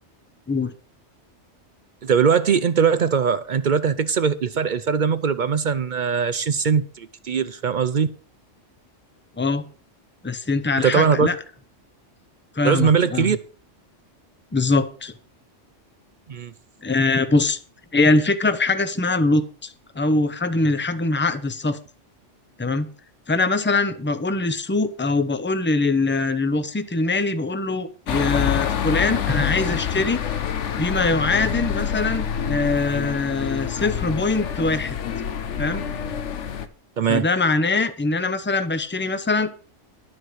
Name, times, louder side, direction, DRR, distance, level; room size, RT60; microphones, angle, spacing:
voice 1, 2.0-8.1 10.8-11.3 12.6-13.4 16.3-16.5 37.0-37.3, right 6 dB, 55° right, 0.6 m, -20 dB
voice 2, 10.2-11.4 12.5-13.3 14.5-15.1 16.8-17.6 17.9-21.8 22.6-22.9 23.3-30.2 30.8-35.0 35.6-35.8 37.1-39.7, left 3 dB, 10° left, 0.6 m, -22 dB
sound 1, 28.1-36.7, left 8 dB, 75° left, 1.2 m, -27 dB
12.5 x 4.8 x 7.8 m
omnidirectional pair, 1.3 m